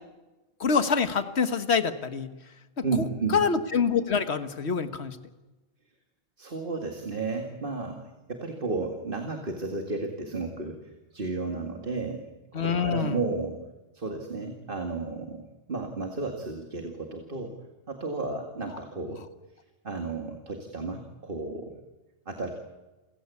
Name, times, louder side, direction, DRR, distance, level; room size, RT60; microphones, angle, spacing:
voice 1, 0.6-2.3 3.3-5.2 12.5-13.2, left 6 dB, 70° left, 10 dB, 1.7 m, -25 dB
voice 2, 2.8-3.4 6.4-8.0 8.3-12.2 12.5-13.6 13.9-15.4 15.7-17.5 17.9-19.2 19.8-21.7 22.3-22.5, right 3 dB, 50° right, 4 dB, 2.4 m, -33 dB
29.0 x 16.5 x 8.5 m, 1.1 s
omnidirectional pair, 1.1 m